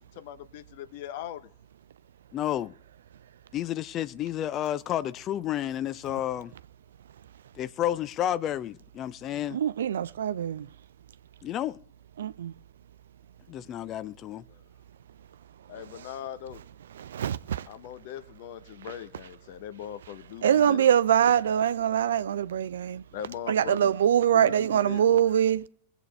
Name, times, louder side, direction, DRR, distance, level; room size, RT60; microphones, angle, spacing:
voice 1, 0.1-1.5 14.5-14.6 15.7-16.6 17.6-20.9 23.1-23.9 24.3-25.5, left 10 dB, 50° left, 1.0 m, -40 dB
voice 2, 2.3-2.7 3.5-6.5 7.6-9.6 11.4-11.8 13.5-14.4, left 11 dB, 30° left, 0.5 m, -31 dB
voice 3, 9.5-10.7 12.2-12.5 17.0-17.7 20.4-23.0 23.5-25.7, right 9 dB, 65° right, 0.4 m, -24 dB
21.5 x 8.1 x 3.4 m
figure-of-eight pair, 90°, 0 cm